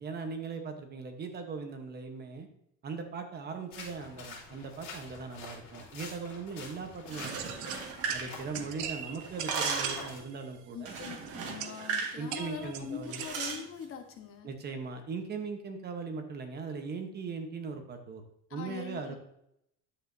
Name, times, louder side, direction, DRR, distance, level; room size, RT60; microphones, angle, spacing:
voice 1, 0.0-2.5 2.8-7.5 8.1-10.9 12.2-13.2 14.4-19.2, right 4 dB, 35° right, 5 dB, 1.1 m, -39 dB
sound 1, 3.7-10.2, left 4 dB, 70° left, 2.8 m, -47 dB
sound 2, 7.0-8.9 9.2-10.1 10.9-12.2 12.4-12.6 13.1-13.6, right 5 dB, 55° right, 1.7 m, -36 dB
sound 3, 7.2-13.3, right 10 dB, 75° right, 0.9 m, -42 dB
voice 2, 8.1-8.7 10.7-14.5 18.5-19.2, left 7 dB, 45° left, 4 dB, 1.3 m, -43 dB
10.0 x 8.1 x 2.7 m, 0.76 s
cardioid pair, 170°, 29 cm